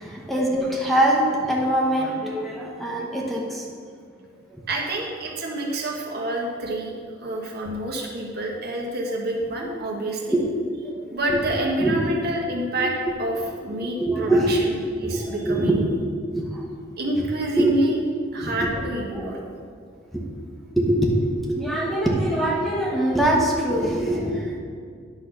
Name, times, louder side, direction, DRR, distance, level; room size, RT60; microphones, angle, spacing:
voice 1, 0.0-3.7 4.5-4.6 10.3-10.4 10.8-11.4 11.8-12.0 12.8-12.9 13.8-14.5 14.8-15.9 16.3-16.6 17.6-17.7 18.4-18.8 19.1-19.3 20.1-20.2 20.8-24.6, right 1 dB, ahead, -3 dB, 1.1 m, -23 dB
voice 2, 4.7-10.4 11.1-12.9 13.2-15.9 17.0-18.0 18.3-19.4, right 1 dB, 55° right, -1 dB, 1.4 m, -28 dB
10.5 x 4.0 x 6.1 m, 2.1 s
head